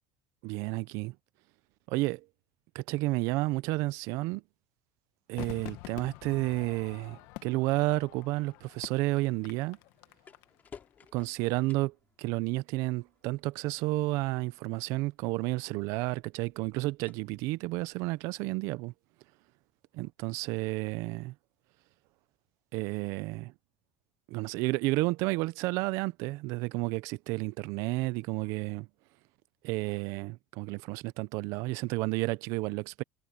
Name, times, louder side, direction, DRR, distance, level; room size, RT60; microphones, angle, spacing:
voice 1, 0.4-1.1 1.9-2.2 2.7-4.4 5.3-9.8 11.1-18.9 20.0-21.3 22.7-23.5 24.3-28.9 29.6-33.0, right 21 dB, 70° right, 0.7 m, -31 dB
Crowd / Fireworks, 5.4-10.8 11.0-11.1, left 20 dB, 70° left, 1.9 m, -46 dB
sound 1, 7.6-18.5, left 6 dB, 30° left, 4.9 m, -60 dB
supercardioid pair, 105°, 6 cm